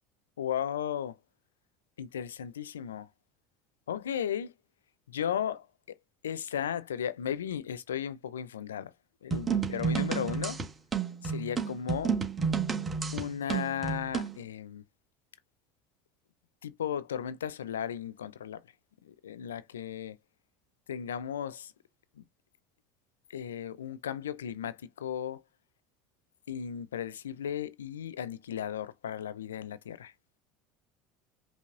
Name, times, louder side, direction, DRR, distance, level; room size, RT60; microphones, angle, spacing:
voice 1, 0.4-1.2 2.0-3.1 3.9-4.5 5.1-6.0 6.2-8.9 9.2-10.6 11.2-12.2 13.1-14.8 16.6-18.6 19.0-20.2 20.9-21.7 22.2-22.3 23.3-25.4 26.5-30.1, left 9 dB, 90° left, 0.4 m, -35 dB
sound 1, 9.3-14.4, right 6 dB, 30° right, 1.5 m, -31 dB
5.4 x 3.0 x 2.5 m
hypercardioid pair, 80°, 0 cm